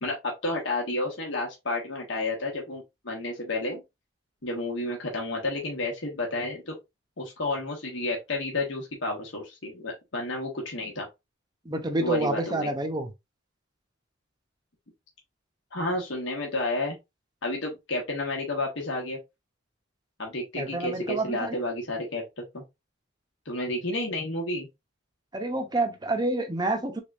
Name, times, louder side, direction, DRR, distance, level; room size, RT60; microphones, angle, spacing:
voice 1, 0.0-3.8 4.4-6.8 7.2-11.1 12.0-12.7 15.7-17.0 17.4-19.2 20.2-22.6 23.5-24.7, left 2 dB, 70° left, 1.1 m, -31 dB
voice 2, 11.7-13.1 20.6-21.6 25.3-27.0, right 2 dB, 20° right, 0.6 m, -28 dB
3.5 x 3.5 x 2.5 m
head